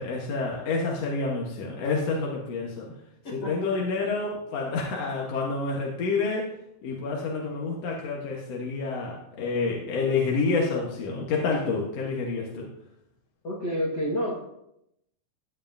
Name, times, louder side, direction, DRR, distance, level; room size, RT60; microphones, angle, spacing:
voice 1, 0.0-2.9 3.3-6.5 6.8-12.7, left 4 dB, 65° left, -2 dB, 2.3 m, -28 dB
voice 2, 3.2-3.9 13.4-14.4, equal, 40° left, -2 dB, 1.9 m, -30 dB
14.5 x 9.7 x 2.6 m, 0.81 s
omnidirectional pair, 3.3 m